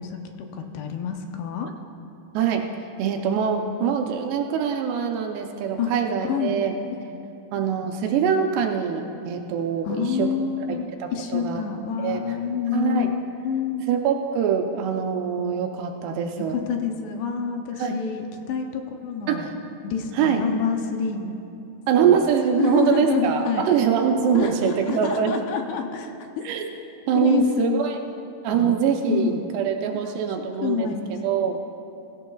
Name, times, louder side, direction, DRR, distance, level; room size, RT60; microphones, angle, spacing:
voice 1, 0.0-1.7 5.8-5.9 6.3-6.6 7.1-7.2 9.9-10.9 11.1-13.8 16.5-19.5 19.8-21.3 22.0-22.2 22.6-23.7 24.3-26.4 27.2-27.8 28.5-28.7 29.1-29.5 30.6-31.1, left 7 dB, 80° left, 4 dB, 2.7 m, -27 dB
voice 2, 2.3-2.6 3.0-6.8 7.5-10.3 10.7-11.6 12.0-12.2 12.7-13.1 13.9-16.6 17.8-18.0 19.3-19.5 20.1-20.4 21.9-25.4 26.4-26.7 27.1-28.0 28.4-30.9 31.2-31.6, right 7 dB, 80° right, 3 dB, 2.6 m, -23 dB
17.0 x 16.0 x 2.3 m, 2.8 s
omnidirectional pair, 5.1 m